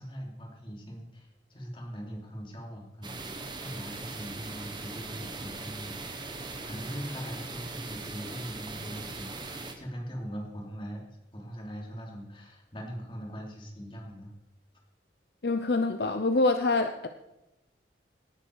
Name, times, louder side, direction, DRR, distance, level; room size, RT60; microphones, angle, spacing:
voice 1, 0.0-11.0 11.3-14.3, equal, 25° left, -1 dB, 3.0 m, -41 dB
sound 1, 3.0-9.7, right 3 dB, 25° right, 1.3 m, -40 dB
voice 2, 15.4-17.1, left 3 dB, 55° left, 7 dB, 0.7 m, -25 dB
18.0 x 11.0 x 4.7 m, 0.98 s
head